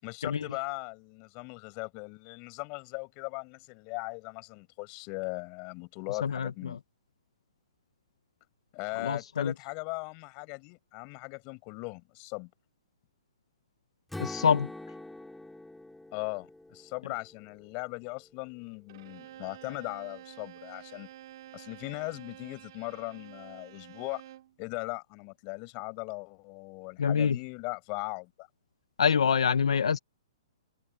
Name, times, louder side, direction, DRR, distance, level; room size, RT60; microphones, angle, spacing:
voice 1, 0.0-6.8 8.7-12.5 16.1-21.1 21.5-24.2 24.6-28.5, left 33 dB, 30° left, 7.2 m, -39 dB
voice 2, 6.1-6.8 8.9-9.5 14.2-14.7 27.0-27.4 29.0-30.0, left 7 dB, 85° left, 1.3 m, -26 dB
Strum, 14.1-18.3, left 2 dB, 5° left, 3.1 m, -45 dB
Bowed string instrument, 18.9-24.6, right 13 dB, 50° right, 3.6 m, -50 dB
hypercardioid pair, 155°, 3 cm